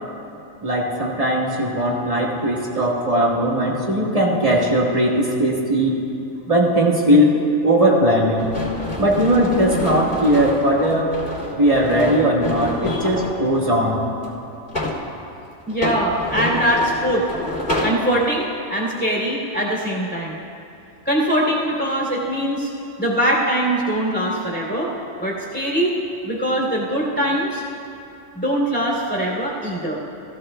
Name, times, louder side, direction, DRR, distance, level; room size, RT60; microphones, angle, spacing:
voice 1, 0.6-5.9 6.5-7.3 7.6-8.5 9.0-11.0 11.6-14.0, equal, 30° right, -3 dB, 1.6 m, -18 dB
sound 1, 8.4-13.4 14.2-15.1 15.7-18.0, left 1 dB, 45° left, 3.1 m, -27 dB
voice 2, 15.7-17.3 17.8-20.4 21.0-22.7 23.0-24.9 25.2-26.0 26.2-27.6 28.3-30.0, right 1 dB, 10° left, -4 dB, 2.7 m, -22 dB
19.0 x 15.5 x 2.2 m, 2.8 s
omnidirectional pair, 1.3 m